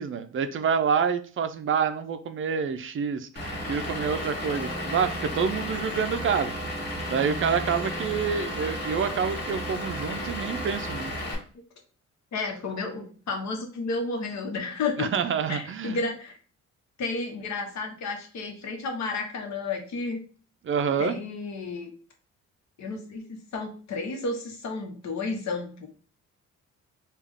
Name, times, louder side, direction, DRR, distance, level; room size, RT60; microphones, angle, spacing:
voice 1, 0.0-6.5 7.1-11.1 15.0-16.0 20.6-21.2, right 6 dB, 45° right, 10 dB, 0.4 m, -27 dB
Vehicle / Engine, 3.4-11.4, equal, 35° left, 1.6 m, -33 dB
voice 2, 12.3-15.1 15.5-16.4 17.0-20.2 21.0-21.9 22.8-25.9, left 3 dB, 65° left, 4 dB, 1.0 m, -32 dB
3.5 x 2.4 x 3.4 m, 0.39 s
cardioid pair, 90°, 30 cm